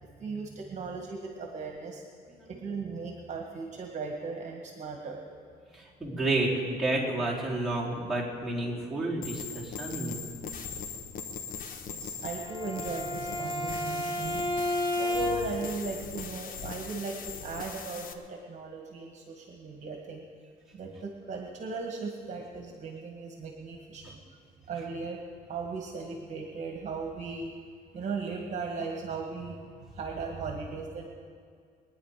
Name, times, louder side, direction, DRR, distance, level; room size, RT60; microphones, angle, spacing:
voice 1, 0.0-2.0 2.5-5.2 11.9-14.6 15.0-20.2 20.7-24.2 24.7-25.2 25.5-27.5 27.9-31.1, right 4 dB, 45° right, 1 dB, 1.9 m, -37 dB
voice 2, 5.7-10.2, right 2 dB, 5° right, -7 dB, 4.4 m, -30 dB
sound 1, 9.2-18.1, left 6 dB, 55° left, 1.2 m, -40 dB
Bowed string instrument, 12.3-15.7, left 1 dB, 25° left, 2.8 m, -32 dB
23.0 x 10.0 x 5.1 m, 2.1 s
cardioid pair, 110°, 17 cm